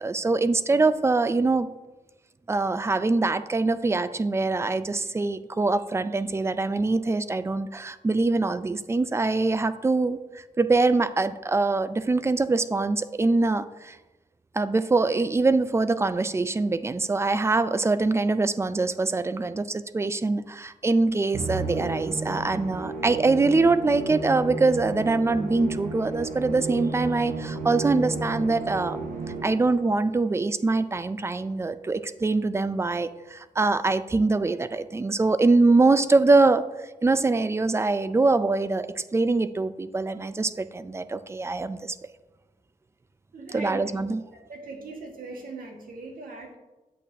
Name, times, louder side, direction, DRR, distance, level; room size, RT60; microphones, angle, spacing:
voice 1, 0.0-1.7 2.5-14.0 14.5-29.0 29.4-36.6 37.0-42.0 43.5-44.2, right 3 dB, 20° right, 13 dB, 0.3 m, -23 dB
Musical instrument, 21.3-29.8, right 3 dB, 70° right, 0.9 m, -33 dB
voice 2, 43.3-43.8 44.1-44.2 44.5-46.6, right 3 dB, 85° right, 1 dB, 1.6 m, -39 dB
8.4 x 8.3 x 2.7 m, 1.1 s
wide cardioid pair, 135°, 14 cm